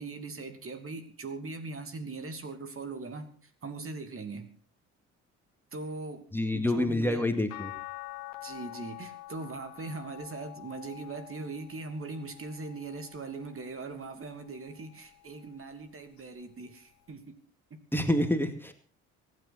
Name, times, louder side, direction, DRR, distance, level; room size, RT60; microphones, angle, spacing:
voice 1, 0.0-4.5 5.7-6.3 6.5-7.2 8.4-17.4 17.7-17.8, right 3 dB, 40° right, 9 dB, 2.9 m, -40 dB
voice 2, 6.3-7.7 17.9-18.7, left 1 dB, 5° left, 6 dB, 2.3 m, -27 dB
sound 1, 7.5-13.8 14.4-15.7 17.1-17.2, left 18 dB, 70° left, 1.6 m, -47 dB
24.5 x 9.7 x 4.3 m, 0.41 s
hypercardioid pair, 60°, 34 cm